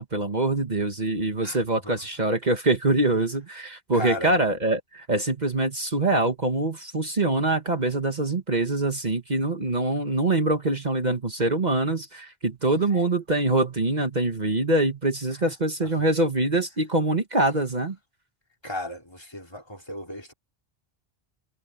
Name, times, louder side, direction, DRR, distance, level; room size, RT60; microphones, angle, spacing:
voice 1, 0.0-18.0, right 2 dB, 45° right, 1.7 m, -24 dB
voice 2, 3.9-4.3 12.9-13.0 15.4-15.5 18.6-20.3, left 1 dB, 25° left, 3.0 m, -35 dB
omnidirectional pair, 1.0 m